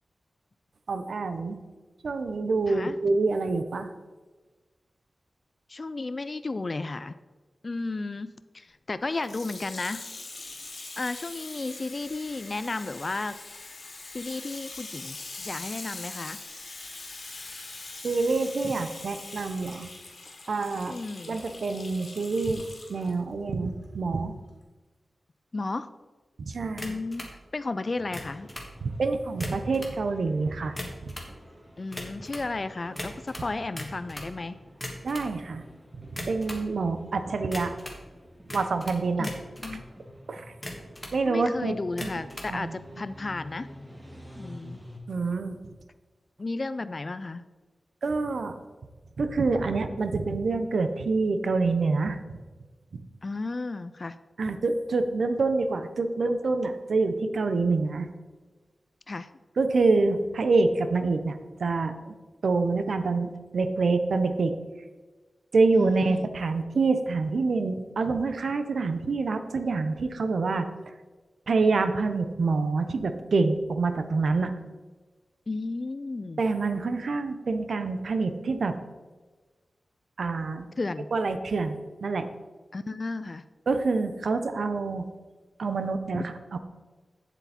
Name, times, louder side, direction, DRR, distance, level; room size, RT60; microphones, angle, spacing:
voice 1, 0.9-1.6 2.0-3.9 18.0-19.9 20.5-21.0 21.3-22.6 22.9-24.3 26.4-26.9 28.8-30.8 31.0-31.1 35.0-35.6 36.0-37.7 38.5-39.3 40.3-40.4 41.1-42.1 42.5-42.7 45.1-45.6 48.0-48.6 49.2-52.4 54.4-58.1 59.6-62.1 62.4-64.5 65.5-70.6 71.5-74.5 76.4-78.8 80.2-80.7 81.1-82.3 83.7-85.1 85.6-86.3, right 3 dB, 75° right, 9 dB, 0.7 m, -26 dB
voice 2, 5.7-7.2 7.6-10.0 11.0-13.4 14.1-16.4 18.6-18.7 20.9-21.4 25.5-25.9 26.8-27.3 27.5-28.5 31.8-34.6 39.2-39.3 39.6-39.8 41.2-43.7 44.4-44.8 46.4-47.4 53.2-54.2 59.1-59.3 65.7-66.3 75.5-76.4 80.8-81.1 82.7-83.4 86.1-86.3, left 3 dB, 35° left, 13 dB, 0.3 m, -33 dB
Water tap faucet / Sink (filling or washing), 9.1-23.1 23.8-23.9, left 3 dB, 65° left, 1.9 m, -42 dB
sound 1, 26.8-27.3 28.0-28.7 29.3-30.0 30.6-31.3 31.9-32.5 33.0-34.3 34.7-35.3 36.1-36.7 37.5-38.0 38.5-39.8 40.5-41.2 41.9-42.5, left 1 dB, 10° left, 1.5 m, -39 dB
sound 2, 27.9-45.0, equal, 10° right, 1.8 m, -48 dB
8.2 x 7.8 x 4.2 m, 1.3 s
wide cardioid pair, 130°, 0 cm